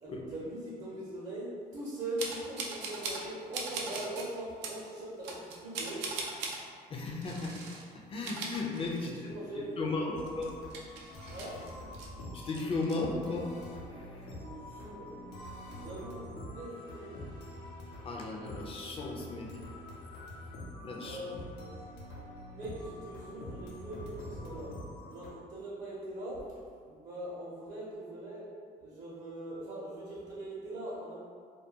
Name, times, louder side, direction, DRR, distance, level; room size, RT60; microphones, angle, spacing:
voice 1, 0.0-6.0 9.0-10.2 11.3-11.6 14.4-15.2 15.7-17.4 21.0-21.7 22.5-24.7 25.1-26.4 26.9-28.5 28.8-31.1, right 1 dB, 45° right, -7 dB, 0.6 m, -41 dB
sound 1, 2.2-3.3 3.5-4.3 4.6-4.8 5.2-6.6 7.2-7.8 8.1-9.3 9.6-9.7 10.2-12.1 12.4-13.0, right 4 dB, 85° right, 0.4 m, -40 dB
voice 2, 6.9-7.6 7.9-9.3 9.8-10.6 12.3-13.5 13.9-14.3 18.0-19.5 20.8-21.2, left 3 dB, 35° left, 0 dB, 0.4 m, -35 dB
sound 2, 10.1-25.3, left 1 dB, 85° left, 0.6 m, -46 dB
2.2 x 2.2 x 2.7 m, 2.1 s
cardioid pair, 110°, 17 cm